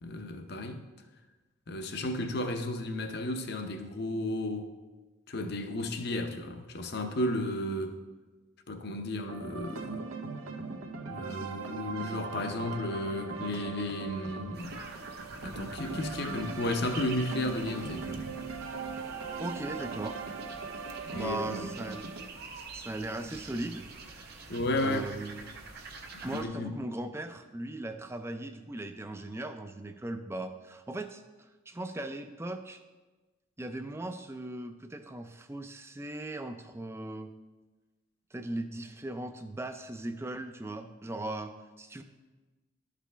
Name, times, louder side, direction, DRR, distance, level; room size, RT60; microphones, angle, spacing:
voice 1, 0.0-0.8 1.7-4.7 5.3-8.0 8.7-10.0 11.1-14.8 15.4-18.2 21.1-21.7 24.5-25.0 26.3-26.8, left 1 dB, 50° left, 0.7 m, -33 dB
sound 1, 9.3-22.3, right 4 dB, 80° right, 0.8 m, -40 dB
sound 2, 14.5-26.4, right 3 dB, 50° right, 0.8 m, -46 dB
voice 2, 19.4-20.2 21.1-22.0 22.5-24.5 24.8-25.5 26.2-31.2 31.7-32.8 33.6-37.3 38.3-42.0, right 2 dB, 10° right, 0.4 m, -38 dB
12.0 x 5.0 x 3.4 m
head